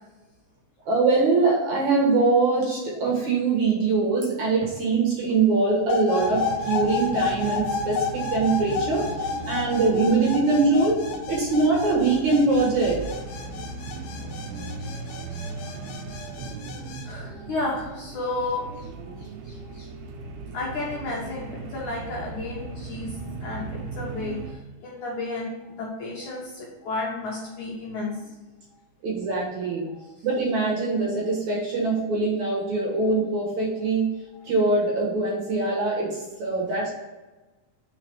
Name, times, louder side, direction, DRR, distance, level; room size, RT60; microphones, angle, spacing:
voice 1, 0.9-13.0 29.0-29.9 30.2-37.0, right 3 dB, 60° right, -3 dB, 2.2 m, -23 dB
sound 1, 5.9-17.1, left 5 dB, 90° left, 2.8 m, -31 dB
Bus Ride, 6.2-24.5, right 3 dB, 80° right, 2.7 m, -37 dB
voice 2, 14.5-15.2 15.7-15.8 16.1-16.3 16.7-18.9 19.2-19.9 20.5-28.2 29.9-30.0, left 2 dB, 70° left, -3 dB, 2.0 m, -33 dB
5.0 x 4.9 x 4.5 m, 1.2 s
omnidirectional pair, 4.4 m